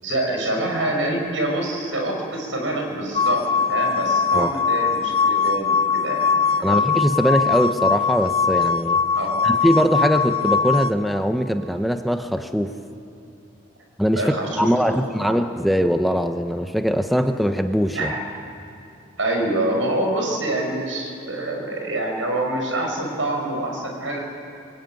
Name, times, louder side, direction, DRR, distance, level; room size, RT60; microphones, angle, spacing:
voice 1, 0.0-3.4 3.7-6.8 9.1-9.5 14.2-15.4 17.9-18.2 19.2-24.2, right 1 dB, 80° right, 1 dB, 6.1 m, -26 dB
sound 1, 3.1-10.9, left 5 dB, 30° left, 0.9 m, -21 dB
voice 2, 6.6-9.0 9.4-12.8 14.0-18.1, equal, ahead, 6 dB, 0.8 m, -21 dB
25.0 x 23.0 x 9.2 m, 2.7 s
head